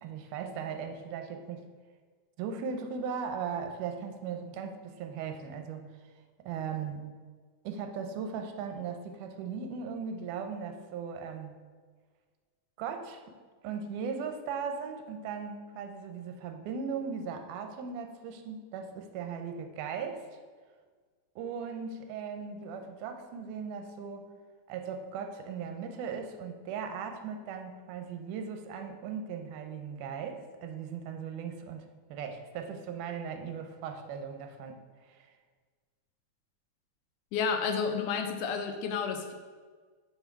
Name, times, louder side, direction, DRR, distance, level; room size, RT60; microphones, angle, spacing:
voice 1, 0.0-1.7 2.4-5.9 6.4-7.0 7.6-11.6 12.8-13.2 13.6-20.3 21.4-24.3 24.7-35.3, right 6 dB, 85° right, 6 dB, 2.1 m, -38 dB
voice 2, 37.3-39.3, left 6 dB, 85° left, 5 dB, 2.1 m, -31 dB
5.6 x 4.5 x 4.6 m, 1.5 s
omnidirectional pair, 3.6 m